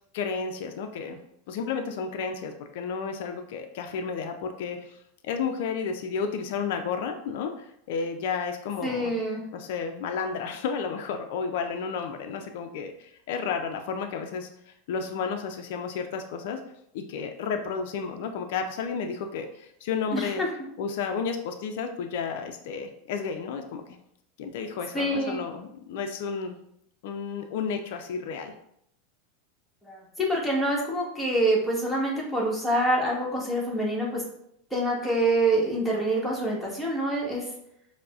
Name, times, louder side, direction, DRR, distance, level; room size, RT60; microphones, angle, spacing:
voice 1, 0.1-1.2 1.5-5.0 5.2-9.1 9.5-14.5 14.9-16.6 16.9-20.4 20.8-23.8 24.4-26.6 27.0-28.5, left 5 dB, 65° left, 5 dB, 0.4 m, -32 dB
voice 2, 8.8-9.4 20.1-20.5 24.9-25.4 29.8-34.2 34.7-37.4, right 1 dB, ahead, -4 dB, 1.2 m, -26 dB
4.5 x 2.1 x 2.4 m, 0.73 s
hypercardioid pair, 100°, 0 cm